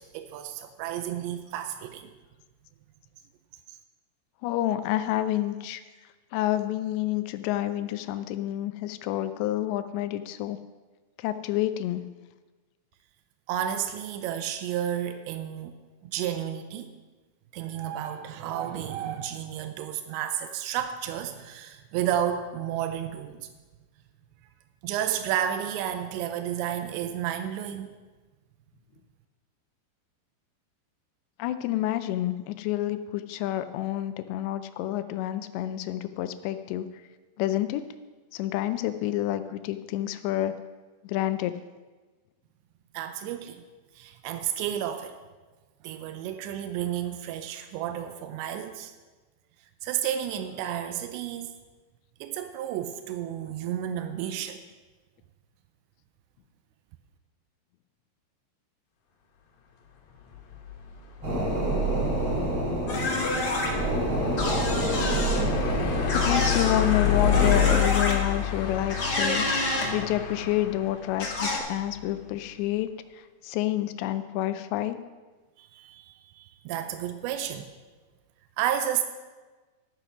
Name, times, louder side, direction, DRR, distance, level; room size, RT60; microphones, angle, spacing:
voice 1, 0.0-2.1 13.5-15.7 16.0-16.9 17.5-23.5 24.8-27.9 42.9-43.6 44.0-45.2 45.8-48.9 49.8-51.5 52.2-54.6 75.6-77.7 78.6-79.0, right 10 dB, 85° right, 8 dB, 2.9 m, -31 dB
voice 2, 4.4-5.8 6.3-10.6 11.2-12.0 31.4-36.9 37.4-37.8 38.3-40.5 41.0-41.5 64.2-64.3 66.1-69.5 69.9-72.9 73.4-75.0, left 13 dB, 85° left, 11 dB, 2.8 m, -28 dB
sound 1, 60.2-72.4, left 11 dB, 65° left, 2.5 m, -30 dB
sound 2, 61.2-67.7, right 1 dB, 30° right, 4.1 m, -27 dB
sound 3, 62.9-63.7 64.4-65.4 66.1-66.8 67.3-68.1 68.9-69.9 71.2-71.6, left 2 dB, 45° left, 1.3 m, -28 dB
12.5 x 6.7 x 6.0 m, 1.3 s
omnidirectional pair, 5.1 m